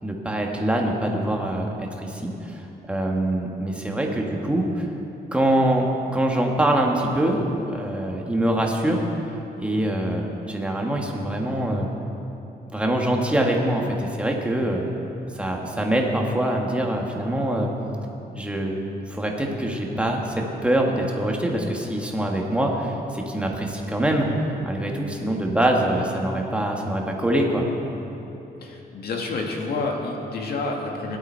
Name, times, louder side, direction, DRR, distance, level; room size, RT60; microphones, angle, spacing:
voice 1, 0.0-2.6 2.9-4.9 5.3-5.9 6.1-7.4 7.7-9.0 9.6-11.9 12.7-14.9 15.3-17.7 18.4-18.7 19.1-27.7, right 1 dB, 5° right, 0 dB, 1.5 m, -24 dB
voice 2, 28.6-31.2, left 3 dB, 70° left, 1 dB, 1.8 m, -29 dB
17.5 x 11.5 x 4.5 m, 3.0 s
wide cardioid pair, 140°, 17 cm